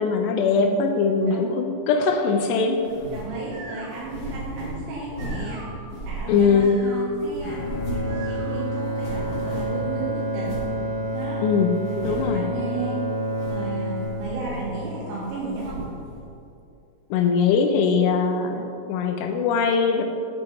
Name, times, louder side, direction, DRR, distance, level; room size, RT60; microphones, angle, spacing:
voice 1, 0.0-2.8 6.3-6.8 11.4-11.7 12.0-12.5 17.1-20.0, left 5 dB, 80° left, 4 dB, 2.5 m, -21 dB
voice 2, 1.3-1.6 3.1-5.6 6.0-10.6 11.1-11.4 11.9-13.0 13.5-15.8, right 3 dB, 80° right, -6 dB, 3.5 m, -34 dB
sound 1, 2.8-3.3 3.9-5.5 5.9-6.8 7.2-8.2 8.4-8.5 8.8-9.9 10.4-10.7 11.2-11.3 11.8-12.4 13.2-13.7 13.9-14.8 15.2-16.0, right 1 dB, 40° left, 1.8 m, -35 dB
sound 2, 3.3-8.8, right 3 dB, 60° right, 3.7 m, -45 dB
Bowed string instrument, 7.4-15.6, equal, 65° left, 2.1 m, -29 dB
10.5 x 7.7 x 4.2 m, 2.7 s
omnidirectional pair, 5.4 m